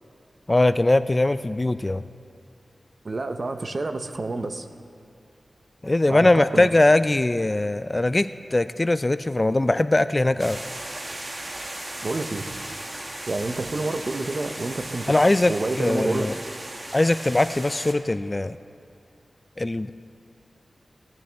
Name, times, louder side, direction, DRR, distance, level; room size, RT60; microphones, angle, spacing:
voice 1, 0.5-2.0 5.8-10.6 15.1-15.5 15.8-16.3 16.9-18.6 19.6-19.9, left 2 dB, 30° left, 13 dB, 0.3 m, -21 dB
voice 2, 3.0-4.7 6.1-6.7 12.0-12.5 13.3-16.3, right 2 dB, 55° right, 8 dB, 0.7 m, -29 dB
sound 1, 10.4-17.9, right 1 dB, 40° right, 1.0 m, -36 dB
18.5 x 10.5 x 3.4 m, 2.5 s
cardioid pair, 55°, 0 cm